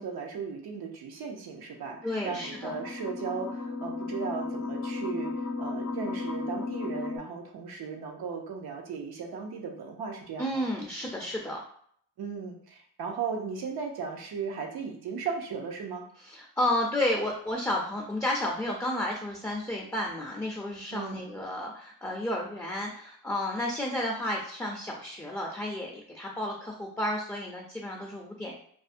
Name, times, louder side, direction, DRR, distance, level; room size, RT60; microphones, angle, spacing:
voice 1, 0.0-5.3 5.6-10.5 12.2-16.0 20.9-21.3, right 5 dB, 80° right, 2 dB, 0.6 m, -36 dB
sound 1, 1.9-7.2, left 3 dB, 45° left, 0.6 m, -35 dB
voice 2, 2.0-2.8 10.4-11.6 16.2-28.6, left 1 dB, 10° left, -1 dB, 0.4 m, -32 dB
2.4 x 2.1 x 2.5 m, 0.62 s
cardioid pair, 70°, 38 cm